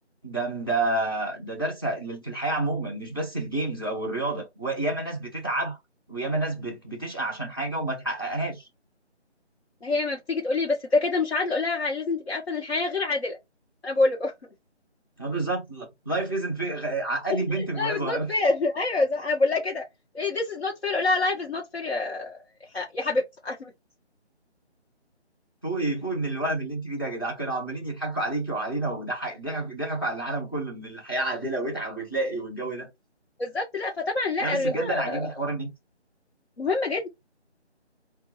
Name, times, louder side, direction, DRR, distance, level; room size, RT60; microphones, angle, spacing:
voice 1, 0.2-5.8 6.1-8.7 15.2-18.3 25.6-32.9 34.4-35.7, right 2 dB, 20° left, 0.7 m, -29 dB
voice 2, 9.8-13.4 13.8-14.3 17.3-19.8 20.1-22.4 22.7-23.7 33.4-35.3 36.6-37.1, left 3 dB, 65° left, 1.0 m, -26 dB
4.2 x 2.2 x 2.9 m
figure-of-eight pair, 160°, 34 cm